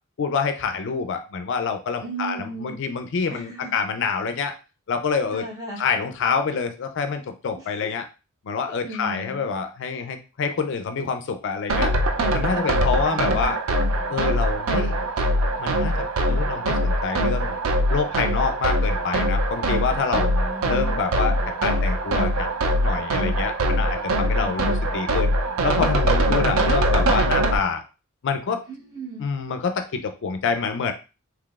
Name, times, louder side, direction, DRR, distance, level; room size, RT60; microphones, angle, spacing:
voice 1, 0.2-4.6 4.9-5.4 5.8-8.0 8.4-11.9 12.3-13.6 14.1-15.0 15.6-17.6 17.9-20.3 20.7-22.5 22.8-25.3 25.6-27.8 28.2-28.6 29.2-30.9, left 5 dB, 55° left, 7 dB, 0.4 m, -27 dB
voice 2, 2.0-2.8 3.3-3.7 5.3-5.8 7.6-7.9 8.7-9.4 12.6-13.6 20.1-21.0 24.3-24.7 28.7-29.2, right 2 dB, 15° right, -4 dB, 1.0 m, -37 dB
sound 1, 11.7-27.6, right 1 dB, 70° right, 0.5 m, -22 dB
3.8 x 2.9 x 2.3 m, 0.32 s
head